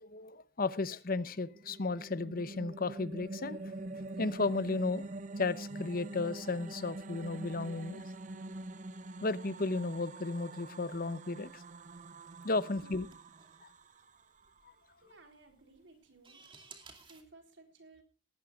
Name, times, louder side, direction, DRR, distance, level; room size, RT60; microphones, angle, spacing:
voice 1, 0.0-5.1 5.4-8.0 9.2-11.6 12.4-13.1, left 3 dB, 50° left, 15 dB, 0.9 m, -34 dB
sound 1, 1.3-14.7, right 2 dB, 45° right, 0.8 m, -45 dB
sound 2, 11.4-17.2, right 4 dB, 30° right, 2.5 m, -60 dB
voice 2, 12.6-13.1 15.0-16.4 17.1-18.0, right 3 dB, 70° right, 5 dB, 4.1 m, -58 dB
19.0 x 16.0 x 2.5 m, 0.33 s
head